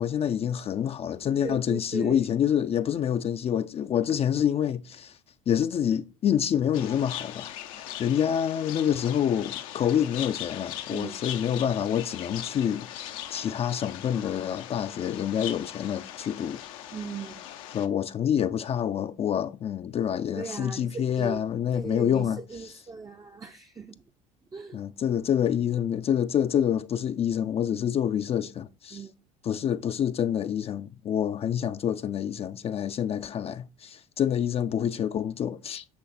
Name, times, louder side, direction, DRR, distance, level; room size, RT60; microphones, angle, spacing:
voice 1, 0.0-5.2 5.5-12.9 13.3-16.6 17.7-22.4 24.7-29.0 29.5-35.8, left 9 dB, 35° left, 0.4 m, -27 dB
voice 2, 1.4-2.3 10.9-11.2 16.9-17.5 20.3-21.4 21.7-24.0 24.5-24.8 28.9-29.2, right 4 dB, 20° right, 0.5 m, -38 dB
sound 1, 6.7-17.9, left 12 dB, 85° left, 0.6 m, -40 dB
7.7 x 3.2 x 4.1 m
supercardioid pair, 80°, 17 cm